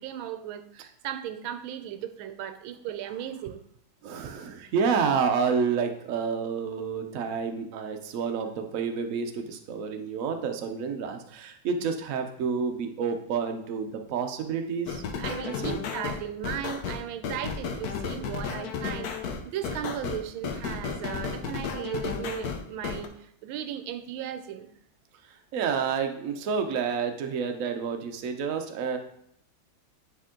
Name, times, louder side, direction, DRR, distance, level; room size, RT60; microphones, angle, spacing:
voice 1, 0.0-3.6 15.2-24.7, right 10 dB, 90° right, 9 dB, 1.4 m, -36 dB
voice 2, 4.0-15.0 15.6-15.8 25.5-29.0, right 6 dB, 60° right, 5 dB, 0.9 m, -29 dB
sound 1, 14.9-23.1, left 6 dB, 65° left, 1.0 m, -33 dB
9.4 x 3.6 x 3.7 m, 0.72 s
omnidirectional pair, 2.2 m